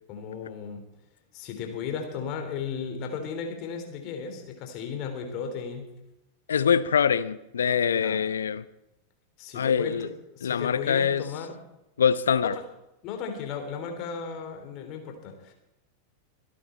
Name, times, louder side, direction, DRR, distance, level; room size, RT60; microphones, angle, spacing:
voice 1, 0.1-0.8 1.3-5.9 7.9-8.2 9.4-10.1 10.3-11.5 13.0-15.5, left 6 dB, 40° left, 4 dB, 3.2 m, -35 dB
voice 2, 6.5-8.7 9.5-10.1 10.4-11.3 12.0-12.6, left 7 dB, 70° left, 15 dB, 0.6 m, -24 dB
25.5 x 8.7 x 4.4 m, 0.91 s
figure-of-eight pair, 90°, 0 cm